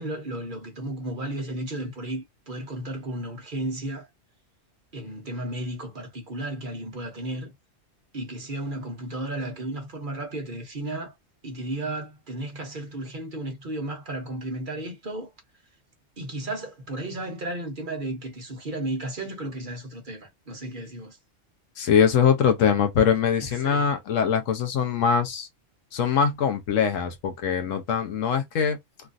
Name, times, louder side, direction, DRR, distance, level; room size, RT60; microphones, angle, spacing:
voice 1, 0.0-4.1 4.9-7.5 8.1-11.1 11.4-15.3 16.2-21.2 23.4-23.9, right 1 dB, 45° right, 0.9 m, -34 dB
voice 2, 21.8-25.5 25.9-28.8, left 7 dB, 85° left, 1.1 m, -22 dB
3.1 x 2.5 x 2.5 m
omnidirectional pair, 1.3 m